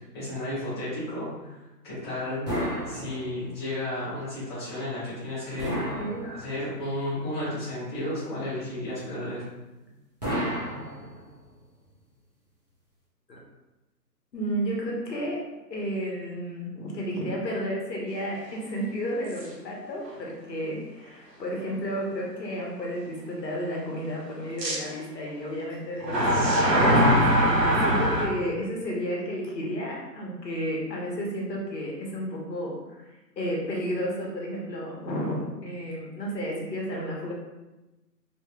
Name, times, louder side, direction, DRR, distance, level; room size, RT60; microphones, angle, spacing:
voice 1, 0.1-1.6 1.8-2.5 2.9-5.8 6.2-9.5, left 1 dB, 15° left, -14 dB, 0.8 m, -33 dB
sound 1, 2.5-3.6 5.6-6.8 10.2-11.5, equal, 25° right, 0.5 m, -32 dB
voice 2, 14.3-15.4 15.7-27.2 27.8-37.3, equal, 80° left, -2 dB, 1.1 m, -32 dB
sound 2, 19.3-19.4 20.1-20.2 24.6-24.8 26.0-28.3, equal, 75° right, 1.1 m, -21 dB
2.9 x 2.9 x 2.3 m, 1.0 s
hypercardioid pair, 160°, 50 cm